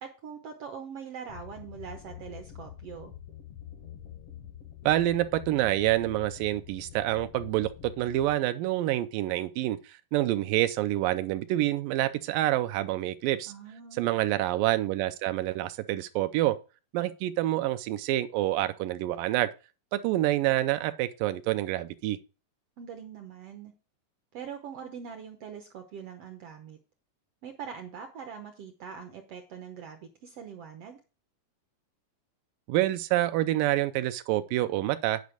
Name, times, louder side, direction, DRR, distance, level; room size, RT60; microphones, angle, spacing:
voice 1, 0.0-3.1 13.5-14.0 22.8-23.7 24.3-26.8 27.4-31.0, right 7 dB, 75° right, 1.4 m, -43 dB
sound 1, 1.3-8.3, left 10 dB, 70° left, 1.4 m, -46 dB
voice 2, 4.9-9.8 10.1-13.5 14.0-16.6 16.9-19.5 19.9-22.2 32.7-35.2, right 15 dB, 90° right, 2.3 m, -27 dB
9.5 x 5.1 x 4.9 m
omnidirectional pair, 3.9 m